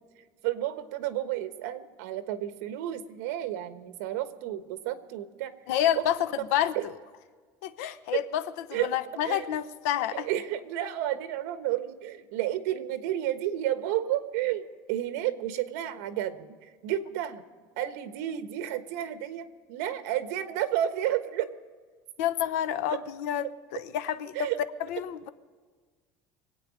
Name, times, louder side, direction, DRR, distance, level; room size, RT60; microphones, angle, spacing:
voice 1, 0.4-5.5 5.9-6.0 6.7-6.8 8.7-9.0 9.2-9.5 10.1-17.4 17.8-21.5 22.9-23.0 24.3-24.6, right 12 dB, 80° right, 10 dB, 1.2 m, -31 dB
voice 2, 5.7-6.9 7.6-8.4 8.7-10.3 22.2-24.5 24.9-25.3, left 11 dB, 80° left, 13 dB, 0.8 m, -29 dB
24.0 x 8.8 x 5.0 m, 1.5 s
cardioid pair, 180°, 8 cm